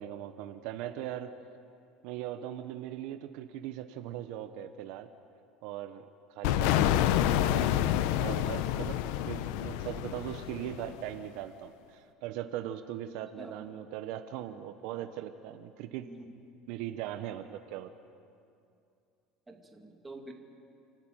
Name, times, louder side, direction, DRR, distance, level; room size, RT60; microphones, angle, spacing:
voice 1, 0.0-1.3 2.0-5.1 5.6-16.1 16.7-17.9, right 11 dB, 70° right, 9 dB, 0.9 m, -40 dB
sound 1, 6.4-11.1, left 12 dB, 75° left, 0.8 m, -28 dB
voice 2, 16.0-16.3 19.5-20.3, right 2 dB, 10° right, 2 dB, 2.2 m, -47 dB
29.0 x 12.0 x 9.2 m, 2.5 s
cardioid pair, 150°, 0 cm